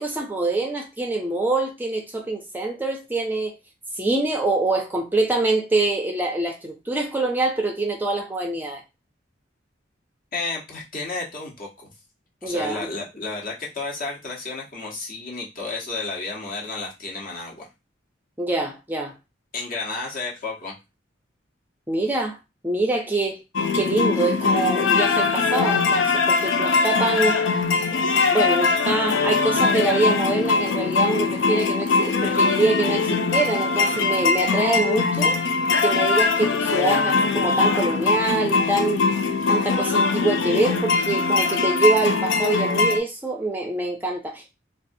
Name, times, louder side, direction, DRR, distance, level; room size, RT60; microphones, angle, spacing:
voice 1, 0.0-3.5 4.0-8.8 12.4-12.9 18.4-19.1 21.9-22.4 22.6-23.4 23.7-27.4 28.3-35.4 35.8-39.0 39.5-44.5, right 2 dB, 10° right, 0.4 m, -25 dB
voice 2, 10.3-11.9 12.4-17.7 19.5-20.7, left 3 dB, 50° left, 1.0 m, -32 dB
sound 1, 23.6-43.0, left 4 dB, 80° left, 0.4 m, -21 dB
4.0 x 2.3 x 2.6 m
head